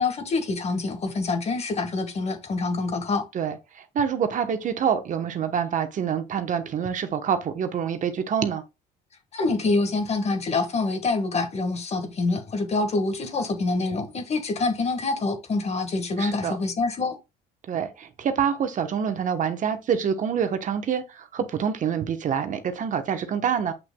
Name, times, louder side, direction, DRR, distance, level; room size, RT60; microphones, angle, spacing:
voice 1, 0.0-3.3 9.3-17.2, left 3 dB, 40° left, 1.6 m, -26 dB
voice 2, 3.3-8.6 16.2-16.5 17.7-23.7, right 7 dB, 50° right, 1.1 m, -26 dB
7.8 x 6.1 x 2.3 m
cardioid pair, 110°, 17 cm